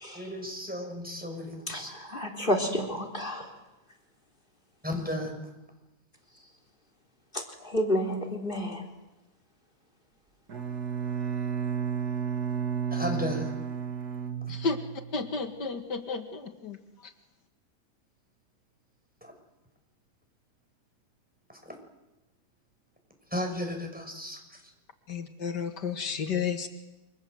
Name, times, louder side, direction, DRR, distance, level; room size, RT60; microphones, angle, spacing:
voice 1, 0.1-1.9 4.8-5.4 12.9-13.5 19.2-19.3 21.7-21.8 23.3-24.4, left 1 dB, 5° right, 3 dB, 6.2 m, -34 dB
voice 2, 1.7-3.5 7.6-8.8, equal, 30° left, 5 dB, 4.0 m, -30 dB
Bowed string instrument, 10.5-15.2, right 7 dB, 65° right, 2.5 m, -32 dB
voice 3, 15.1-16.8 25.1-26.7, left 5 dB, 85° left, 7 dB, 2.5 m, -32 dB
29.0 x 25.5 x 8.0 m, 1.0 s
omnidirectional pair, 1.8 m